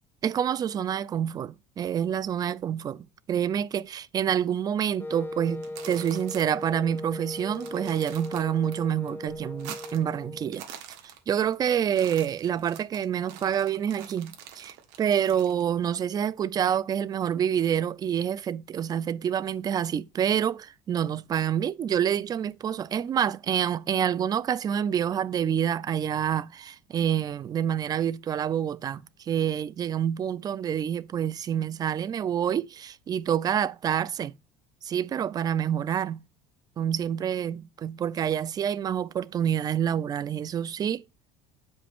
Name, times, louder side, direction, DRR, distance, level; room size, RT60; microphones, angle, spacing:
voice 1, 0.2-10.6 11.3-34.3 34.8-36.2 36.8-41.0, right 9 dB, 30° right, 0.4 m, -27 dB
Wind instrument woodwind instrument, 5.0-10.7, left 1 dB, 15° left, 0.7 m, -39 dB
sound 1, 5.5-6.7 7.0-7.1 7.4-8.7 9.1-10.1 10.4-11.5 11.8-15.6, right 10 dB, 80° right, 1.5 m, -45 dB
8.1 x 5.2 x 3.6 m
supercardioid pair, 115°, 13 cm